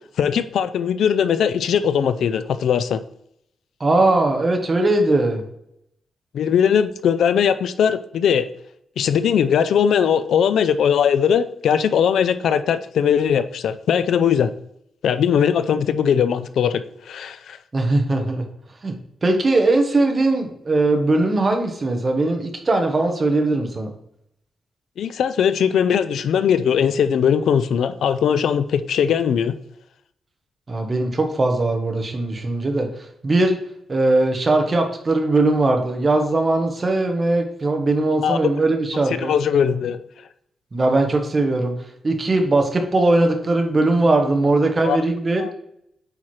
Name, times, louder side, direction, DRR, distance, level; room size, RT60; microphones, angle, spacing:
voice 1, 0.2-3.0 6.3-8.5 9.0-14.5 15.0-17.6 25.0-29.5 38.2-38.4 39.1-40.0 44.8-45.0 45.4-45.5, left 8 dB, 85° left, 12 dB, 0.4 m, -19 dB
voice 2, 3.8-5.4 17.7-18.4 18.8-18.9 19.2-23.9 30.7-32.9 33.2-33.6 33.9-39.3 40.7-41.7 42.0-45.4, right 2 dB, 25° right, 4 dB, 0.9 m, -19 dB
8.6 x 4.3 x 3.1 m, 0.75 s
wide cardioid pair, 165°, 0 cm